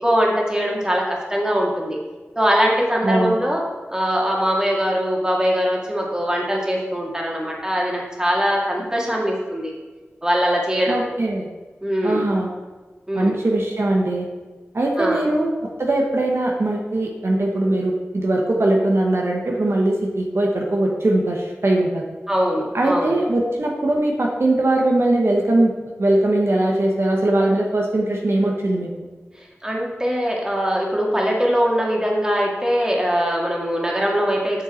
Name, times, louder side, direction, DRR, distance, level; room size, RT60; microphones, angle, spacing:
voice 1, 0.0-2.0 2.4-3.6 3.9-9.7 10.2-11.0 11.8-12.3 13.1-13.4 15.0-15.3 22.3-23.2 29.4-34.6, equal, 15° right, -2 dB, 1.9 m, -21 dB
voice 2, 3.0-3.4 10.9-11.5 12.0-12.5 13.1-14.3 14.7-22.0 22.7-28.9, right 1 dB, 65° right, 0 dB, 1.1 m, -20 dB
7.9 x 6.7 x 4.3 m, 1.3 s
wide cardioid pair, 75°, 5 cm